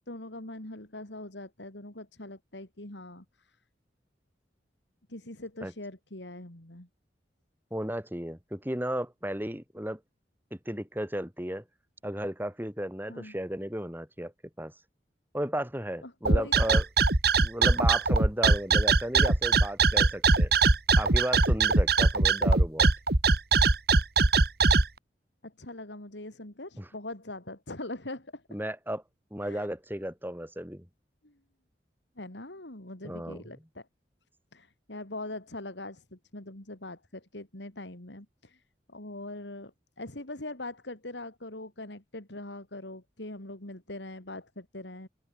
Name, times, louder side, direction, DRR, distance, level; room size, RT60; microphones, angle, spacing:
voice 1, 0.1-3.5 5.1-6.9 13.1-13.4 16.0-16.6 25.4-28.4 29.4-29.7 31.2-31.3 32.2-33.9 34.5-38.6 38.9-39.7 40.0-45.1, left 2 dB, 80° left, 3.7 m, -42 dB
voice 2, 7.7-10.0 10.7-11.6 12.0-14.3 14.6-14.7 15.3-16.8 17.4-20.5 21.0-22.9 26.8-26.9 28.5-29.0 29.3-30.8 33.0-33.4, right 1 dB, 10° right, 7.4 m, -34 dB
sound 1, 16.3-24.9, right 3 dB, 60° right, 2.4 m, -21 dB
open air
head